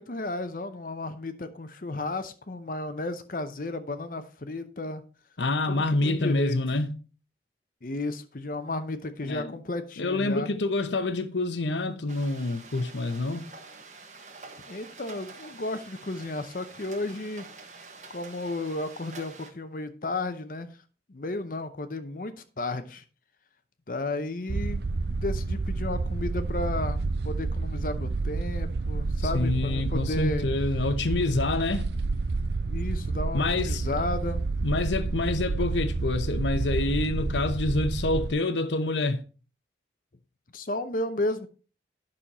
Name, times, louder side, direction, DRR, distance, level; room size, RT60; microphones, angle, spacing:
voice 1, 0.0-5.0 5.7-6.6 7.8-10.5 14.7-17.5 18.1-20.8 21.1-23.0 23.9-30.5 32.7-34.4 40.5-41.5, left 2 dB, 50° left, 0.7 m, -33 dB
voice 2, 5.4-6.9 9.2-9.5 10.0-13.5 29.3-31.9 33.3-34.0 34.6-39.2, left 2 dB, 85° left, 0.9 m, -27 dB
sound 1, 12.1-19.5, right 4 dB, 40° right, 1.5 m, -47 dB
sound 2, 24.5-38.3, right 3 dB, 70° right, 0.6 m, -29 dB
10.0 x 6.4 x 4.1 m
head